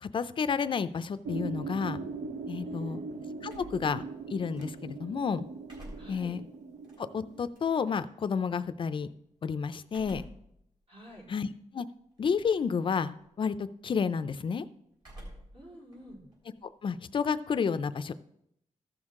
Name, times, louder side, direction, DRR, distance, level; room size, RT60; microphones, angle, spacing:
voice 1, 0.0-2.0 2.5-3.0 3.4-4.0 4.3-5.4 6.1-6.4 7.0-9.1 9.4-10.2 11.3-11.5 11.7-11.9 12.2-14.7 16.8-18.1, left 6 dB, 45° left, 13 dB, 0.4 m, -30 dB
sound 1, 1.2-7.5, right 4 dB, 80° right, 0.7 m, -40 dB
voice 2, 2.6-3.0 6.0-6.4 9.9-10.2 10.9-11.3 15.5-16.2, equal, 60° right, -4 dB, 4.2 m, -48 dB
sound 2, 3.5-5.1 5.5-8.1 9.9-10.5 11.0-11.1 12.2-12.7 13.0-13.4 15.0-15.6 15.9-17.3, equal, 40° right, 3.5 m, -50 dB
14.0 x 6.3 x 3.7 m, 0.76 s
wide cardioid pair, 145°, 12 cm